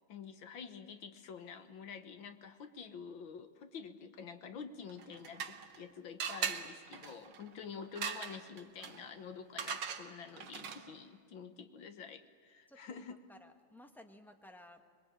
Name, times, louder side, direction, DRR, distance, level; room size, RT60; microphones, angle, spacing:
voice 1, 0.1-13.2, left 6 dB, 70° left, 9 dB, 2.0 m, -48 dB
sound 1, 4.9-5.8 6.2-11.0, right 7 dB, 60° right, 1.8 m, -41 dB
voice 2, 12.7-14.8, left 1 dB, ahead, 5 dB, 1.4 m, -57 dB
26.0 x 22.0 x 8.8 m, 2.1 s
omnidirectional pair, 2.3 m